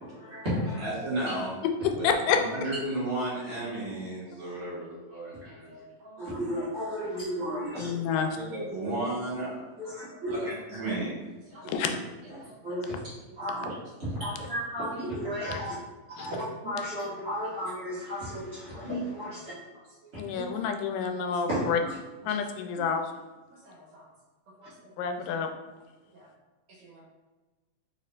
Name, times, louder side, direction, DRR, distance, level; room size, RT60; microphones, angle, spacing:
voice 1, 0.1-0.9 6.2-7.9 9.8-10.5 12.6-12.9 13.4-13.7 14.2-15.7 16.2-19.5 20.3-20.4 21.5-21.9, equal, 85° right, -11 dB, 0.6 m, -33 dB
voice 2, 0.8-1.5 2.0-5.7 7.7-7.9 8.3-9.6 10.5-11.1 11.6-12.0 13.0-13.1, right 1 dB, 50° right, -8 dB, 1.8 m, -33 dB
voice 3, 1.8-2.4 7.8-8.3 11.7-12.0 15.5-15.6 16.2-16.3 20.2-21.8 22.3-23.1 25.0-25.5, left 6 dB, 85° left, 5 dB, 2.1 m, -28 dB
voice 4, 5.2-6.3 10.1-10.4 11.5-11.6 12.4-12.5 23.7-24.0 24.6-24.7 26.1-26.3 26.8-27.0, equal, 65° right, -4 dB, 2.1 m, -52 dB
5.0 x 4.3 x 2.4 m, 1.2 s
omnidirectional pair, 3.7 m